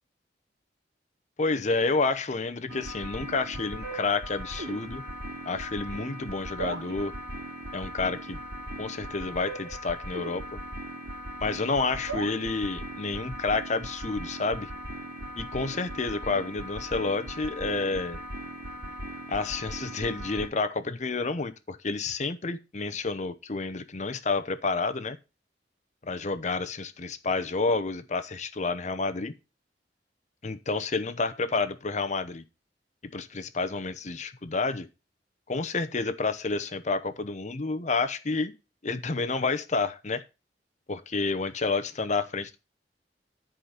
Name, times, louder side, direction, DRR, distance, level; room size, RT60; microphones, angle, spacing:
voice 1, 1.4-5.0 5.4-7.1 7.7-8.4 8.8-10.4 11.4-14.7 15.4-18.2 19.3-25.2 26.0-29.3 30.4-32.4 33.1-34.9 35.5-38.5 38.8-40.2 40.9-42.6, left 3 dB, 45° left, 11 dB, 0.9 m, -29 dB
sound 1, 2.7-20.5, right 1 dB, 85° right, 3.0 m, -38 dB
10.5 x 5.1 x 5.6 m, 0.28 s
head